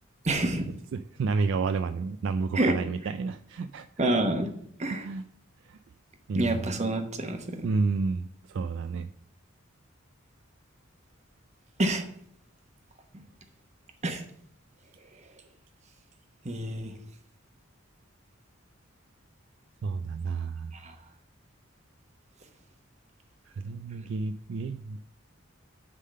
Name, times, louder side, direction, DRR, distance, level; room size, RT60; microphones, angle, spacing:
voice 1, 0.2-0.7 2.5-2.8 4.0-4.5 4.8-5.1 6.3-7.7 11.8-12.0 14.0-14.2 16.4-16.9 20.8-20.9, right 2 dB, 35° right, 5 dB, 1.0 m, -27 dB
voice 2, 0.9-3.9 4.9-5.2 5.7-5.8 6.3-6.8 7.6-9.1 19.8-20.7 23.6-25.0, right 4 dB, 60° right, 11 dB, 0.3 m, -30 dB
9.9 x 3.7 x 6.5 m, 0.68 s
head